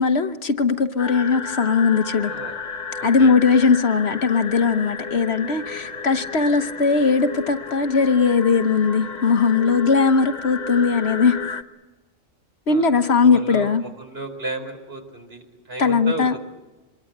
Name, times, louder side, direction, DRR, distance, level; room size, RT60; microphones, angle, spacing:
voice 1, 0.0-2.3 3.0-11.4 12.7-13.8 15.8-16.3, left 5 dB, 60° left, 9 dB, 1.3 m, -19 dB
sound 1, 1.0-11.6, left 5 dB, 35° left, 1.1 m, -33 dB
voice 2, 2.2-2.6 3.0-3.3 12.7-12.9 13.2-16.4, right 2 dB, 55° right, 5 dB, 4.5 m, -34 dB
26.0 x 22.5 x 7.9 m, 1.1 s
omnidirectional pair, 1.3 m